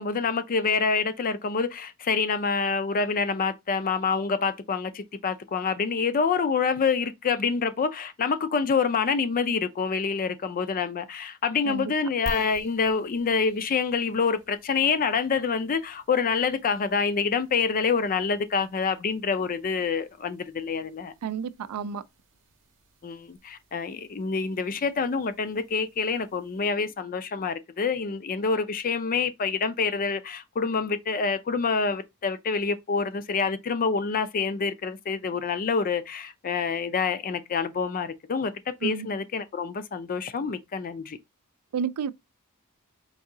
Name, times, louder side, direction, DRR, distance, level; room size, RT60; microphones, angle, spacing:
voice 1, 0.0-21.1 23.0-41.2, left 5 dB, 40° left, 0.4 m, -27 dB
sound 1, 12.3-27.0, right 2 dB, 60° right, 0.7 m, -50 dB
voice 2, 21.2-22.0 38.8-39.1 41.7-42.1, right 7 dB, 80° right, 0.4 m, -30 dB
4.6 x 2.7 x 2.7 m
head